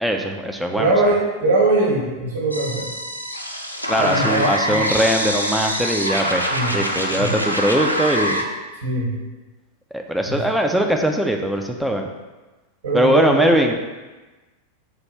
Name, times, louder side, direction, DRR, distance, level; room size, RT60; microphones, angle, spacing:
voice 1, 0.0-0.9 3.9-6.5 6.7-8.4 9.9-12.1 12.9-13.8, equal, ahead, 2 dB, 0.4 m, -20 dB
voice 2, 0.8-2.9 4.0-4.8 6.5-6.7 7.2-7.3 8.8-9.1 10.3-10.4 12.8-13.5, right 2 dB, 65° right, -3 dB, 1.1 m, -21 dB
sound 1, 2.5-8.4, equal, 90° left, 0.3 m, -24 dB
5.7 x 2.5 x 3.1 m, 1.2 s
figure-of-eight pair, 90°, 0 cm